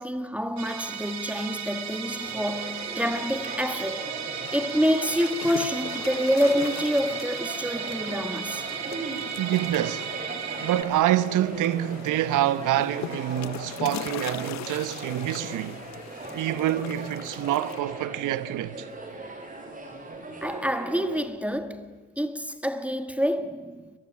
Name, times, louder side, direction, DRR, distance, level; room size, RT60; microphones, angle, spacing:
voice 1, 0.0-4.2 4.5-8.7 20.4-23.9, equal, 5° right, 1.5 m, -27 dB
Musical instrument, 0.6-10.8, right 7 dB, 65° right, 2.6 m, -35 dB
sound 1, 2.1-21.2, right 2 dB, 25° right, 6.1 m, -39 dB
sound 2, 4.4-17.8, left 12 dB, 65° left, 0.9 m, -41 dB
voice 2, 9.4-10.1 10.6-15.8 16.3-18.9, right 13 dB, 85° right, 1.2 m, -26 dB
23.0 x 20.5 x 9.9 m
cardioid pair, 90°, 30 cm